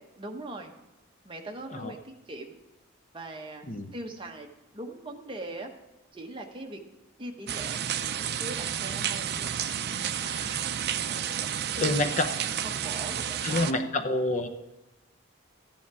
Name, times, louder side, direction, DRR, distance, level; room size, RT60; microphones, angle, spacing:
voice 1, 0.2-0.7 1.2-2.6 3.1-3.7 3.9-4.5 4.7-5.7 6.1-6.8 7.2-10.5 11.1-11.2 11.8-14.1, right 2 dB, 25° right, 3 dB, 1.2 m, -41 dB
sound 1, 7.5-13.7, right 9 dB, 50° right, 0.5 m, -31 dB
voice 2, 10.2-10.6 11.8-12.3 13.4-14.5, left 2 dB, 35° left, 7 dB, 0.7 m, -28 dB
14.0 x 9.7 x 4.8 m, 1.0 s
head